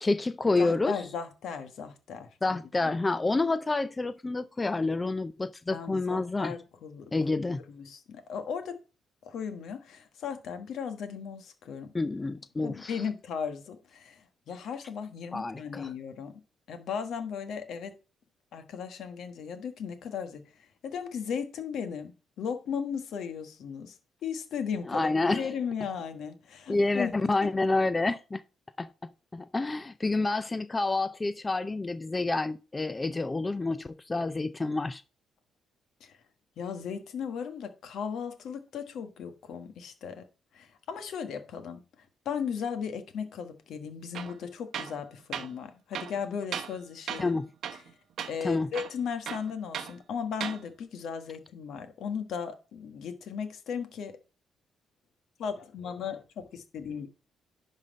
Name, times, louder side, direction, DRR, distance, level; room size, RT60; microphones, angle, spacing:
voice 1, 0.0-0.9 2.4-6.5 7.1-7.6 11.9-13.0 15.3-15.9 24.9-25.5 26.7-28.4 28.8-35.0 47.2-47.5 48.4-48.7, left 3 dB, 20° left, 0.4 m, -28 dB
voice 2, 0.6-2.6 5.7-7.1 7.7-8.8 9.2-11.9 12.6-16.3 16.7-17.9 18.5-27.3 36.0-36.2 36.6-40.2 40.5-47.4 48.3-54.1 55.4-57.1, left 7 dB, 70° left, 1.3 m, -36 dB
Tools, 44.1-44.4 44.7-45.0 45.3-45.5 45.9-46.8 47.1-47.3 47.6-47.9 48.2-48.3 48.7-49.9 50.3-50.6, right 8 dB, 70° right, 0.8 m, -36 dB
10.5 x 4.1 x 5.1 m
cardioid pair, 90°, 0 cm